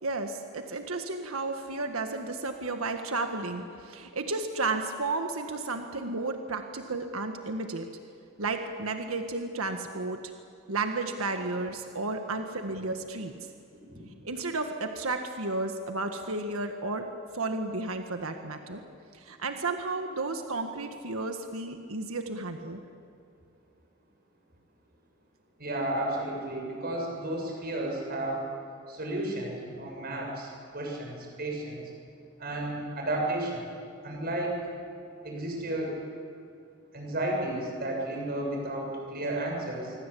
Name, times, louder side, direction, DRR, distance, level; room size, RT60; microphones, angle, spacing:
voice 1, 0.0-7.9 8.4-10.2 10.7-13.5 14.2-17.1 17.3-18.8 19.1-22.8, right 3 dB, 85° right, 6 dB, 1.7 m, -33 dB
voice 2, 25.6-28.5 28.9-31.8 32.4-33.6 34.0-34.6 35.2-36.0 36.9-39.9, right 1 dB, 45° right, 1 dB, 7.1 m, -32 dB
26.0 x 24.5 x 8.5 m, 2.4 s
head